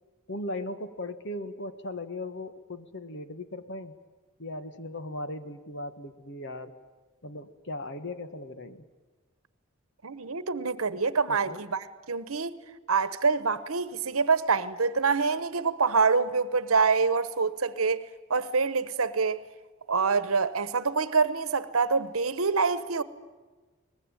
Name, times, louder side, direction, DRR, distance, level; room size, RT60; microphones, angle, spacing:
voice 1, 0.3-4.0 4.4-6.8 7.2-8.8 11.3-11.6, left 1 dB, 55° left, 1.5 m, -38 dB
voice 2, 10.0-12.5 12.9-18.0 18.3-19.4 19.9-23.0, right 4 dB, 80° right, 1.1 m, -26 dB
23.0 x 20.5 x 9.0 m
head